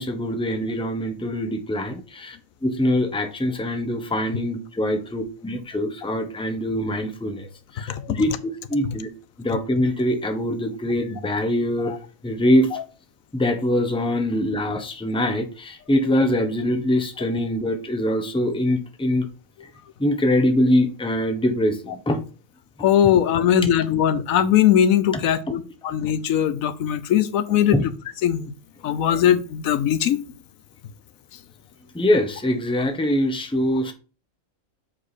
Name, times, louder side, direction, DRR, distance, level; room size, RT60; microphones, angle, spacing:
voice 1, 0.0-2.4 2.6-7.5 7.8-9.1 9.4-11.9 12.2-12.7 13.3-19.3 20.0-22.2 27.7-27.8 31.9-33.9, left 1 dB, 5° left, 0.8 m, -23 dB
voice 2, 22.8-27.8 28.2-28.5 28.8-30.2, left 10 dB, 85° left, 1.1 m, -20 dB
7.6 x 4.9 x 4.1 m
omnidirectional pair, 1.4 m